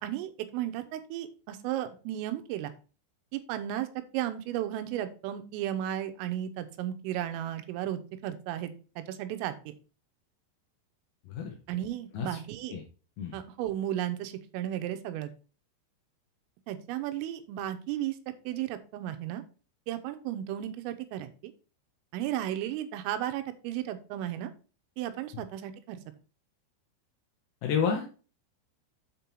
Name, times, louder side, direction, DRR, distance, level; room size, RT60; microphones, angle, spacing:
voice 1, 0.0-2.7 3.3-3.9 4.1-9.7 11.7-12.8 13.3-15.3 16.7-18.2 18.5-19.4 19.9-21.5 22.1-24.5 25.0-26.0, right 12 dB, 90° right, 9 dB, 3.4 m, -34 dB
voice 2, 11.3-11.6 12.1-12.4 12.7-12.8 13.2-13.4 25.3-25.4 27.6-28.1, left 6 dB, 80° left, 1 dB, 2.1 m, -30 dB
7.6 x 5.4 x 4.5 m, 0.36 s
omnidirectional pair, 5.8 m